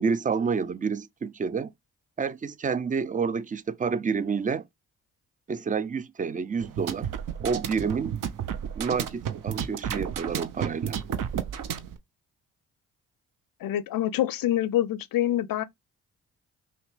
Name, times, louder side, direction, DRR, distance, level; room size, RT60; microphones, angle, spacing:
voice 1, 0.0-1.7 2.2-4.6 5.5-7.1 7.4-8.2 8.8-11.0, right 5 dB, 20° right, 0.4 m, -29 dB
sound 1, 6.6-12.0, right 8 dB, 55° right, 0.7 m, -32 dB
voice 2, 13.6-15.6, left 12 dB, 60° left, 0.6 m, -26 dB
5.6 x 2.1 x 3.2 m
hypercardioid pair, 40°, 39 cm